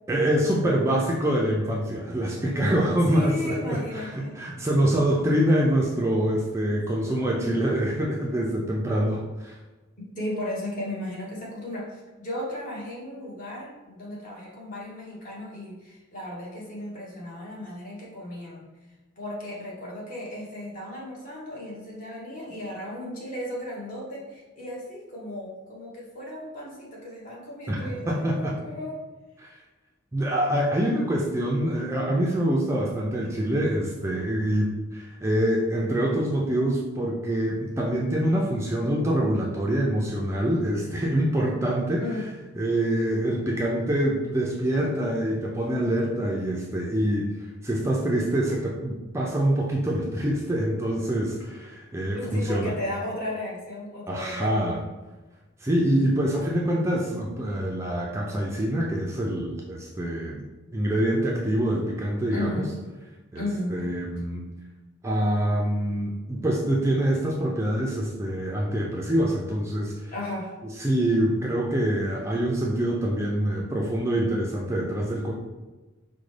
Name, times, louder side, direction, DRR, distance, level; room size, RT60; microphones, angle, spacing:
voice 1, 0.1-9.5 27.7-28.5 29.4-29.5 30.1-42.1 42.6-52.7 54.1-54.8 55.6-60.4 60.7-62.6 63.3-64.5 65.0-70.1 70.8-75.3, right 1 dB, 15° right, -3 dB, 0.3 m, -25 dB
voice 2, 2.9-4.3 10.2-18.6 19.2-29.0 42.0-42.3 52.1-54.6 62.3-62.9 63.3-63.8 70.1-70.5, left 1 dB, 40° left, -5 dB, 1.1 m, -35 dB
5.0 x 2.1 x 3.2 m, 1.2 s
head